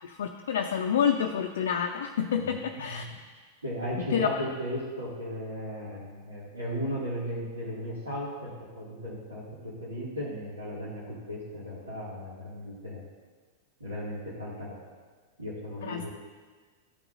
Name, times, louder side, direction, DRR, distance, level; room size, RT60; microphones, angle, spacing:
voice 1, 0.0-3.1 4.0-4.4 15.8-16.0, left 7 dB, 70° left, 2 dB, 0.5 m, -28 dB
voice 2, 2.3-3.2 3.6-8.5 8.7-13.0 13.8-14.8 15.4-16.1, equal, 90° right, -9 dB, 2.2 m, -36 dB
13.0 x 4.8 x 2.6 m, 1.5 s
hypercardioid pair, 95°, 0 cm